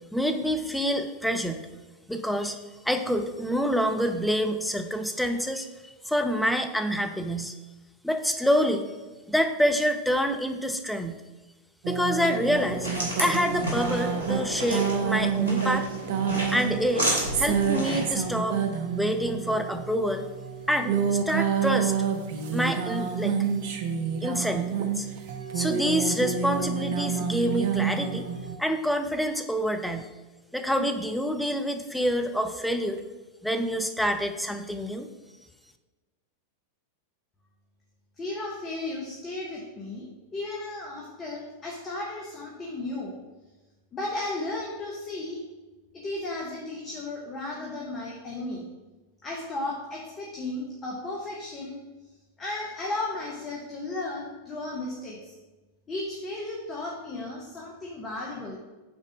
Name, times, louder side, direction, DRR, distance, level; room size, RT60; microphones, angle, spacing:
voice 1, 0.1-1.6 2.1-2.6 2.8-5.7 6.0-7.5 8.0-8.9 9.3-11.2 11.9-12.9 13.2-15.9 16.5-17.1 17.4-18.6 19.0-20.2 20.7-21.9 22.5-23.4 24.2-25.1 25.5-28.3 28.6-30.1 30.5-33.0 33.4-35.1, equal, ahead, 5 dB, 0.6 m, -27 dB
sound 1, 11.8-28.6, right 7 dB, 50° right, 0.7 m, -28 dB
sound 2, 12.4-18.1, equal, 75° right, 2.0 m, -32 dB
voice 2, 38.2-43.1 43.9-45.4 46.0-48.7 49.2-51.8 52.4-55.3 55.9-58.6, left 2 dB, 25° left, -3 dB, 1.2 m, -34 dB
6.1 x 4.2 x 5.2 m, 1.2 s
figure-of-eight pair, 90°, 0 cm